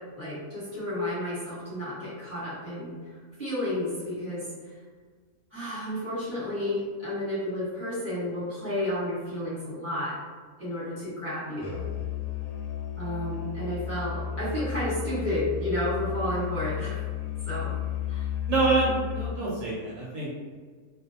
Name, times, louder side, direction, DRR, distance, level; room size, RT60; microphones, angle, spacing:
voice 1, 0.2-2.9 3.4-4.4 5.5-10.1 10.6-11.8 13.0-17.0 17.5-17.7 18.1-18.3, left 1 dB, 10° left, -11 dB, 1.0 m, -31 dB
Musical instrument, 11.6-19.4, left 9 dB, 70° left, 0.9 m, -33 dB
voice 2, 18.5-20.3, right 3 dB, 70° right, -5 dB, 0.9 m, -26 dB
2.4 x 2.1 x 2.7 m, 1.5 s
omnidirectional pair, 1.6 m